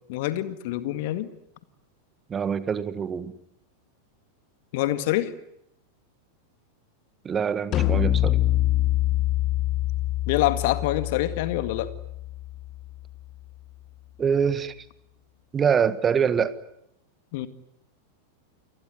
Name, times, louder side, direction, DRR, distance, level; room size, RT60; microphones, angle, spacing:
voice 1, 0.1-1.3 4.7-5.3 10.3-11.9 17.3-17.5, left 14 dB, 50° left, 2.0 m, -26 dB
voice 2, 2.3-3.3 7.2-8.5 14.2-14.7 15.5-16.6, right 7 dB, 20° right, 1.5 m, -24 dB
sound 1, 7.7-13.1, left 15 dB, 35° left, 1.7 m, -25 dB
29.0 x 20.5 x 9.7 m
figure-of-eight pair, 90°, 0 cm